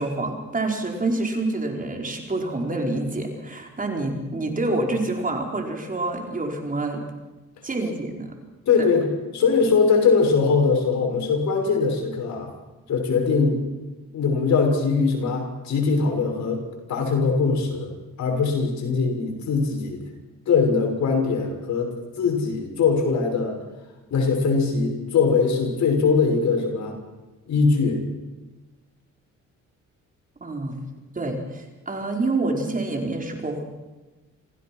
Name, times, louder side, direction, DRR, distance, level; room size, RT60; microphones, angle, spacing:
voice 1, 0.0-7.0 7.6-8.3 30.4-30.8 31.1-33.6, right 2 dB, 25° right, 2 dB, 4.7 m, -27 dB
voice 2, 8.7-9.1 9.3-12.5 12.9-13.6 14.1-16.6 16.9-17.9 18.2-20.0 20.5-23.6 24.1-27.0 27.5-28.0, left 4 dB, 65° left, 3 dB, 6.0 m, -21 dB
27.0 x 16.5 x 6.1 m, 1.1 s
cardioid pair, 90°, 30 cm